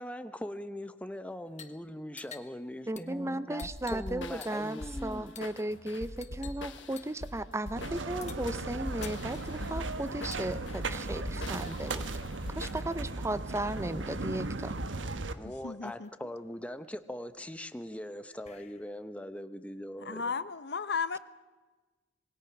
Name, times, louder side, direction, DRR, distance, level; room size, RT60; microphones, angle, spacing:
voice 1, 0.0-5.3 15.4-20.3, left 1 dB, 5° left, 10 dB, 1.0 m, -41 dB
sound 1, 1.5-1.8 2.1-4.2 4.4-4.8 5.3-5.6 6.2-6.6 7.0-7.2 8.2-10.5 11.5-12.6 13.8-13.9 14.2-14.8 15.3-15.4 15.6-16.1 16.6-19.1, left 8 dB, 40° left, 1.4 m, -52 dB
voice 2, 2.9-12.0 12.5-14.7, right 1 dB, 15° right, 14 dB, 0.7 m, -36 dB
sound 2, 3.6-13.2, left 1 dB, 80° left, 1.5 m, -43 dB
sound 3, 7.8-15.3, right 2 dB, 80° right, 1.3 m, -37 dB
voice 3, 15.6-16.1 20.0-21.2, left 5 dB, 60° left, 14 dB, 0.9 m, -34 dB
26.5 x 20.5 x 6.1 m, 1.3 s
head